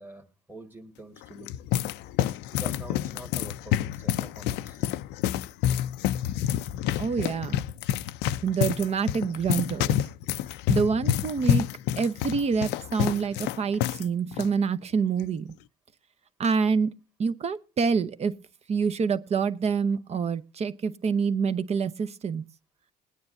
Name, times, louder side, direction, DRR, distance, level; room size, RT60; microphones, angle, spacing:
voice 1, 0.0-1.5 2.5-4.8, right 1 dB, 10° right, 1.7 m, -45 dB
sound 1, 1.2-14.1 14.3-14.5 15.2-15.5, left 11 dB, 90° left, 0.5 m, -28 dB
voice 2, 7.0-7.6 8.4-10.0 10.7-11.7 12.0-15.5 16.4-16.9 17.2-18.3 18.7-22.4, right 5 dB, 40° right, 0.8 m, -26 dB
20.5 x 9.5 x 2.6 m
cardioid pair, 110°, 17 cm